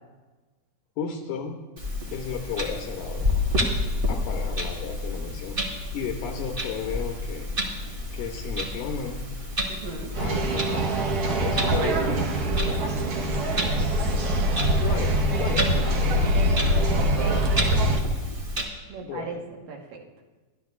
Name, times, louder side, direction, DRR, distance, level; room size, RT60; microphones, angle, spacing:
voice 1, 1.0-1.6 2.1-3.4 4.1-7.5 8.1-9.3 10.2-11.0 11.4-12.3 14.8-16.3 19.0-19.4, left 7 dB, 75° left, 1 dB, 2.5 m, -34 dB
Clock, 1.8-18.6, left 1 dB, 40° right, 0.7 m, -30 dB
voice 2, 9.7-10.1 12.7-12.9 13.8-13.9 16.9-17.4 18.9-19.4 19.7-20.0, right 5 dB, 75° right, -1 dB, 3.0 m, -36 dB
sound 1, 10.1-18.0, right 1 dB, 60° right, 1.6 m, -24 dB
23.5 x 12.0 x 2.4 m, 1.2 s
omnidirectional pair, 3.9 m